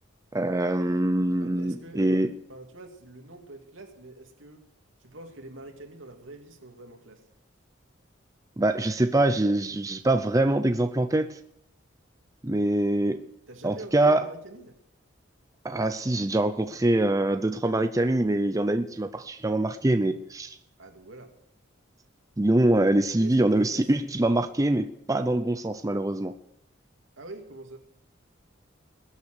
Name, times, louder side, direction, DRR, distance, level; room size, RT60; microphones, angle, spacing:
voice 1, 0.3-2.3 8.6-11.4 12.4-13.3 13.6-14.2 15.6-20.6 22.4-26.3, right 1 dB, 15° right, 8 dB, 0.5 m, -24 dB
voice 2, 1.4-4.6 5.0-7.2 13.5-14.8 17.9-18.3 20.8-21.3 23.2-23.9 27.2-27.8, right 2 dB, 80° right, 3 dB, 2.6 m, -45 dB
21.5 x 8.5 x 6.6 m, 0.75 s
head